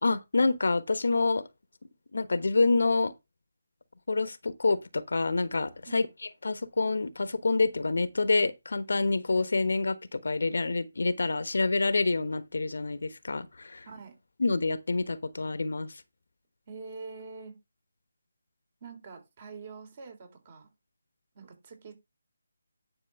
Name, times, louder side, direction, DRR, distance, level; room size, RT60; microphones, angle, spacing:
voice 1, 0.0-1.4 2.1-3.1 4.1-6.1 6.4-13.9 14.4-16.0, left 3 dB, 70° left, 1.1 m, -27 dB
voice 2, 13.9-14.2 16.7-17.6 18.8-20.7 21.3-21.9, right 4 dB, 40° right, 3.7 m, -45 dB
10.5 x 6.4 x 3.5 m
figure-of-eight pair, 155°, 0 cm